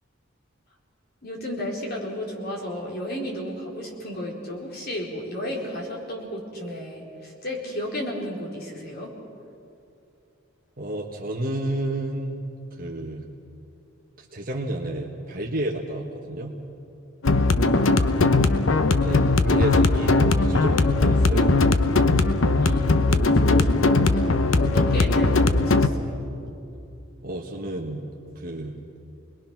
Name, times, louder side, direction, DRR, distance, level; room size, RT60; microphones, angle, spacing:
voice 1, 1.2-9.1 17.6-18.2 19.5-19.6 22.6-26.3, equal, 50° left, -2 dB, 4.4 m, -33 dB
voice 2, 10.8-12.4 12.8-13.2 14.2-16.5 18.9-21.6 27.2-28.0 28.3-28.7, right 1 dB, 45° right, -1 dB, 1.6 m, -31 dB
sound 1, 17.2-25.9, left 3 dB, 85° left, 0.9 m, -19 dB
29.0 x 21.0 x 6.0 m, 2.7 s
head